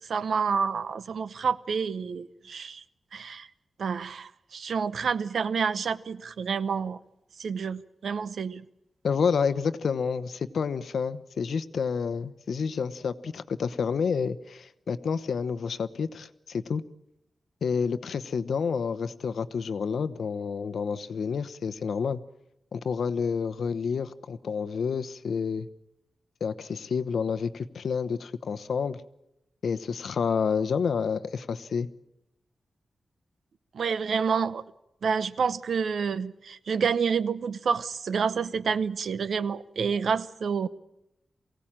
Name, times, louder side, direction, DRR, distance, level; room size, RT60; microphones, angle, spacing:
voice 1, 0.1-2.8 3.1-3.5 3.8-7.0 7.4-8.7 33.7-34.6 35.0-40.7, right 6 dB, 75° right, 14 dB, 0.8 m, -28 dB
voice 2, 9.0-16.8 17.6-22.2 22.7-25.7 26.4-29.0 29.6-31.9, left 6 dB, 80° left, 11 dB, 0.9 m, -29 dB
23.0 x 17.0 x 8.9 m, 0.88 s
wide cardioid pair, 170°, 0 cm